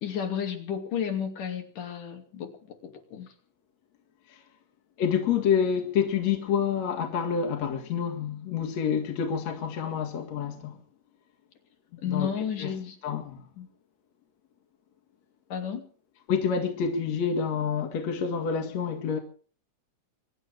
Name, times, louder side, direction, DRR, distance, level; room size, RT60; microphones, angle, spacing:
voice 1, 0.0-3.3 12.0-13.0 13.6-13.7 15.5-15.9, left 8 dB, 80° left, 4.3 m, -32 dB
voice 2, 5.0-10.8 12.1-12.3 12.6-12.7 13.0-13.5 16.3-19.2, left 7 dB, 60° left, 3.1 m, -28 dB
24.0 x 11.5 x 5.0 m
omnidirectional pair, 3.6 m